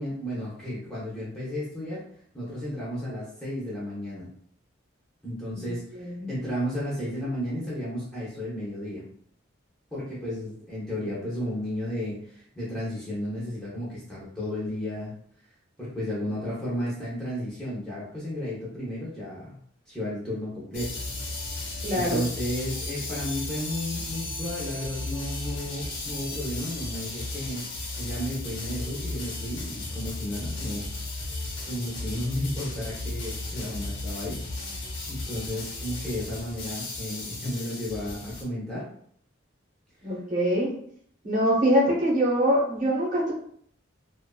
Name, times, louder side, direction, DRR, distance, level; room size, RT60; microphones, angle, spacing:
voice 1, 0.0-2.0 2.3-4.3 5.2-9.0 9.9-15.1 15.8-19.6 19.9-21.0 21.9-27.6 28.0-31.4 31.6-34.4 35.1-38.9, left 1 dB, 5° left, -9 dB, 0.6 m, -33 dB
voice 2, 5.5-6.3 21.8-22.2 40.0-40.7 41.2-43.3, equal, 40° right, -5 dB, 0.9 m, -24 dB
sound 1, 20.7-38.4, left 2 dB, 60° left, 0.7 m, -35 dB
2.5 x 2.4 x 2.2 m, 0.63 s
head